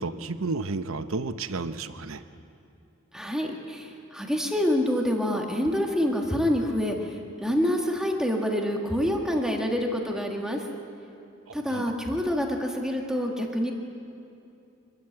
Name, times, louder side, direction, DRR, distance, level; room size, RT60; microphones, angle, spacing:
voice 1, 0.0-2.2 11.7-11.8, right 3 dB, 85° right, 10 dB, 0.9 m, -31 dB
voice 2, 3.1-7.0 7.4-10.6 11.5-13.7, equal, 5° right, 1 dB, 1.7 m, -26 dB
25.0 x 13.5 x 8.0 m, 2.7 s
head